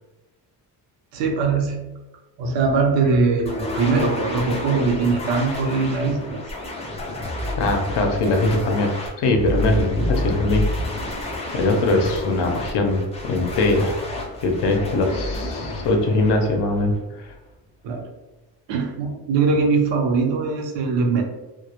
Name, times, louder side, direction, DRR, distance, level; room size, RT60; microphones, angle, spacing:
voice 1, 1.1-1.8 2.4-6.4 9.7-9.8 17.8-18.1 18.7-21.2, right 4 dB, 90° right, 3 dB, 0.6 m, -21 dB
sound 1, 3.4-17.3, left 1 dB, 15° left, 0.3 m, -29 dB
voice 2, 7.6-8.9 9.2-10.7 11.5-14.0 14.4-16.9, left 2 dB, 75° left, 4 dB, 0.6 m, -21 dB
2.1 x 2.0 x 2.8 m, 1.1 s
cardioid pair, 130°, 42 cm